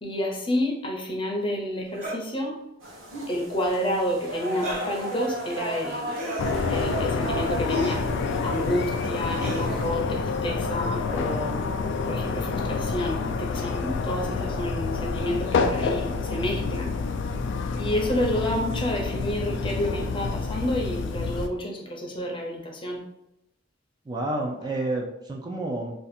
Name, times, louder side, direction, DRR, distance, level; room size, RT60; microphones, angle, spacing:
voice 1, 0.0-2.6 3.3-6.2 6.7-8.0 8.4-11.6 12.1-17.0 17.8-23.0, left 1 dB, 25° left, 0 dB, 0.6 m, -29 dB
sound 1, 1.9-2.2 3.0-3.4 4.5-5.0 6.1-6.6 7.7-8.1 9.3-9.7 11.0-11.3 12.4-12.6 13.6-14.0 15.7-15.8 16.9-17.0 17.7-17.9 18.7-18.9 20.5-20.8, left 1 dB, 40° right, 1.0 m, -36 dB
sound 2, 2.8-9.9, right 1 dB, 85° right, 1.0 m, -35 dB
sound 3, 6.4-21.5, left 4 dB, 65° left, 0.3 m, -28 dB
voice 2, 24.1-26.1, right 2 dB, 20° right, 0 dB, 0.4 m, -30 dB
2.6 x 2.4 x 4.1 m, 0.83 s
head